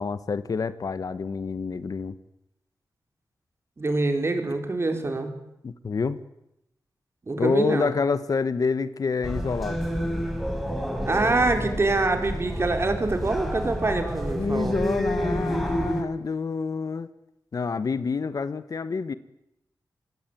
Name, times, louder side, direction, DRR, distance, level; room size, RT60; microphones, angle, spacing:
voice 1, 0.0-2.1 5.6-6.2 7.4-9.8 14.3-17.1 17.5-19.1, left 5 dB, 50° left, 14 dB, 1.2 m, -27 dB
voice 2, 3.8-5.3 7.3-7.9 11.1-14.8, right 3 dB, 35° right, 5 dB, 4.4 m, -25 dB
sound 1, 9.2-16.0, equal, ahead, 4.6 m, -29 dB
26.5 x 22.0 x 9.1 m, 0.83 s
wide cardioid pair, 130°, 8 cm